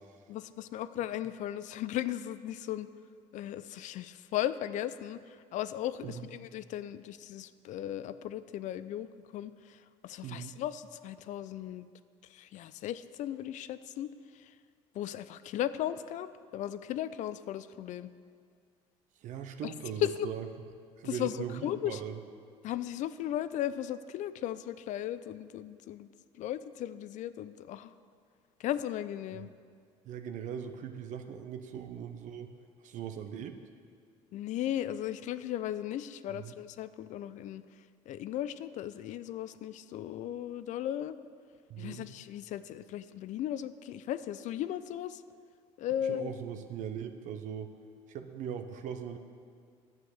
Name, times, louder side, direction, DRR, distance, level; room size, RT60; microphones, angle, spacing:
voice 1, 0.3-2.9 3.3-11.9 12.3-14.5 14.9-18.1 19.6-19.7 20.0-20.3 21.0-22.0 22.6-26.1 26.3-27.9 28.6-29.5 34.3-37.6 38.1-41.2 41.8-45.2 45.8-46.3, left 11 dB, 60° left, 14 dB, 0.5 m, -36 dB
voice 2, 10.2-10.5 19.2-20.5 21.0-22.2 30.1-32.5 32.8-33.6 36.3-36.5 41.7-42.1 46.0-47.7 48.1-49.2, right 8 dB, 65° right, 7 dB, 0.7 m, -40 dB
9.5 x 7.6 x 6.4 m, 2.1 s
supercardioid pair, 85°, 14 cm